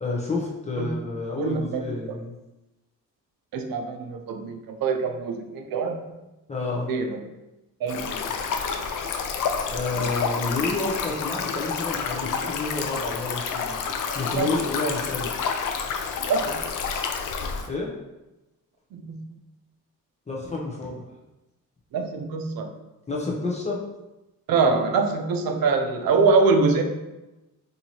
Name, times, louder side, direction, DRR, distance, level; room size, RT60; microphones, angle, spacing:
voice 1, 0.0-2.3 6.5-6.9 9.7-13.8 14.1-15.3 17.7-17.9 20.3-21.1 23.1-23.8, left 3 dB, 20° left, -3 dB, 0.6 m, -29 dB
voice 2, 1.4-2.2 3.5-6.1 6.9-7.2 7.8-8.4 9.9-10.1 14.4-14.6 16.3-16.7 18.9-19.2 21.9-22.7 24.5-26.8, right 4 dB, 85° right, 5 dB, 0.6 m, -24 dB
Stream, 7.9-17.7, left 6 dB, 65° left, 0.5 m, -29 dB
4.5 x 2.7 x 2.8 m, 1.0 s
wide cardioid pair, 145°, 34 cm